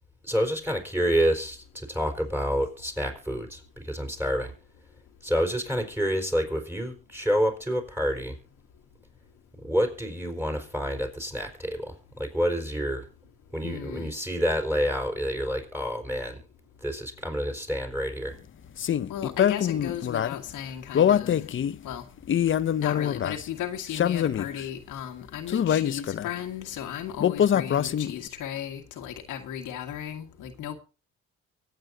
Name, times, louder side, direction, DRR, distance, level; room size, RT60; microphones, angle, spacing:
voice 1, 0.2-4.5 5.2-8.4 9.6-13.1 13.5-16.4 16.8-18.4, equal, 5° right, 4.8 m, -28 dB
voice 2, 13.6-14.1 19.1-21.4 21.8-22.0 22.8-30.8, left 10 dB, 85° left, 1.9 m, -35 dB
sound 1, 18.8-20.3 20.9-21.8 22.2-23.5 23.9-24.6 25.5-26.3 27.2-28.3, left 9 dB, 40° left, 0.6 m, -24 dB
24.0 x 8.7 x 2.7 m
cardioid pair, 90°, 30 cm